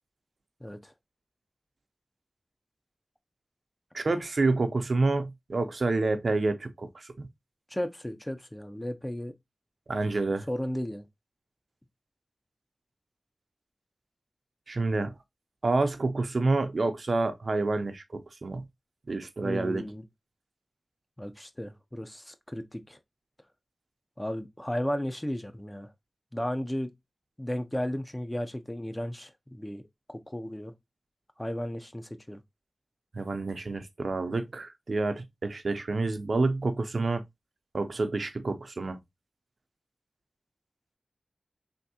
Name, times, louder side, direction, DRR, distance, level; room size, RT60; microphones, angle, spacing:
voice 1, 0.6-0.9 7.7-9.3 10.5-11.0 19.4-20.0 21.2-23.0 24.2-25.9 26.3-26.9 27.4-29.8 30.1-30.7 31.4-32.4, equal, 15° left, 0.5 m, -34 dB
voice 2, 3.9-7.3 9.9-10.5 14.7-15.1 15.6-18.7 19.1-19.8 33.1-37.2 37.7-39.0, right 3 dB, 70° right, 0.5 m, -28 dB
3.5 x 2.5 x 2.7 m
wide cardioid pair, 50°, 0 cm